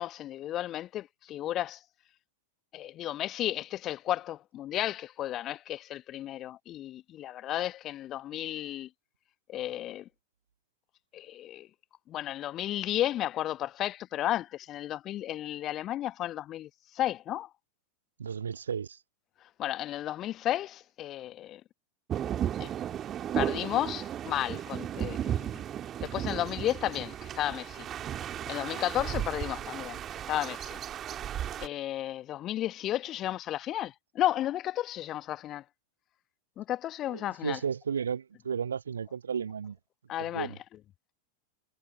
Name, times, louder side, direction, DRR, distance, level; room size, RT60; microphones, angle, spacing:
voice 1, 0.0-1.8 2.7-8.9 9.5-10.1 11.1-11.7 12.1-17.5 19.4-21.6 22.6-22.7 23.3-25.6 26.0-27.9 28.5-30.8 31.6-35.6 36.6-37.6 40.1-40.5, left 13 dB, 30° left, 1.4 m, -33 dB
voice 2, 18.2-19.0 37.1-39.8 40.3-40.6, right 7 dB, 70° right, 0.9 m, -33 dB
sound 1, 22.1-31.7, right 10 dB, 30° right, 2.1 m, -35 dB
figure-of-eight pair, 90°, 0 cm